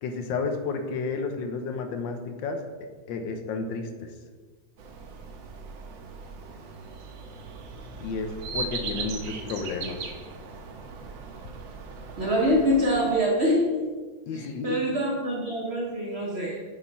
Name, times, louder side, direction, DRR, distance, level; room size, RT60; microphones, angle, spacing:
voice 1, 0.0-2.6 3.1-4.1 8.0-10.0 14.3-15.0, left 4 dB, 75° left, 6 dB, 1.3 m, -31 dB
sound 1, 4.8-13.2, right 4 dB, 75° right, 1.5 m, -39 dB
voice 2, 12.2-13.8 14.3-16.6, equal, 45° right, -3 dB, 0.9 m, -25 dB
7.1 x 4.2 x 4.5 m, 1.4 s
omnidirectional pair, 2.1 m